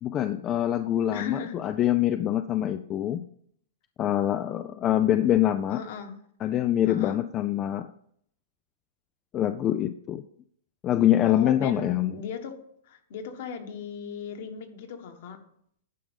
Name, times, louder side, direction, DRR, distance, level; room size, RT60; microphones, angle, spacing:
voice 1, 0.0-3.3 4.0-5.8 6.4-7.9 9.3-10.2 10.8-12.2, left 12 dB, 20° left, 10 dB, 0.3 m, -25 dB
voice 2, 1.1-1.6 5.7-6.2 6.9-7.2 11.3-12.6 12.9-15.4, left 6 dB, 55° left, 6 dB, 1.5 m, -37 dB
10.0 x 5.2 x 5.3 m, 0.68 s
supercardioid pair, 165°, 0 cm